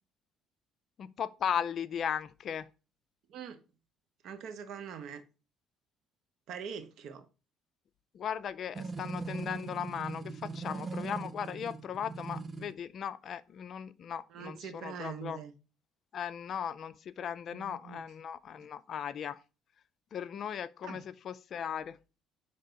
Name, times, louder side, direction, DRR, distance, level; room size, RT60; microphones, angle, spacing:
voice 1, 1.0-2.7 8.1-15.4 16.1-19.4 20.1-22.0, left 8 dB, 50° left, 0.4 m, -37 dB
voice 2, 3.3-3.6 4.2-5.2 6.5-7.3 14.3-15.5 17.5-18.0 20.8-21.1, right 7 dB, 65° right, 0.9 m, -43 dB
sound 1, 8.7-12.7, right 4 dB, 25° right, 0.5 m, -40 dB
5.0 x 3.3 x 5.6 m
cardioid pair, 120°, 0 cm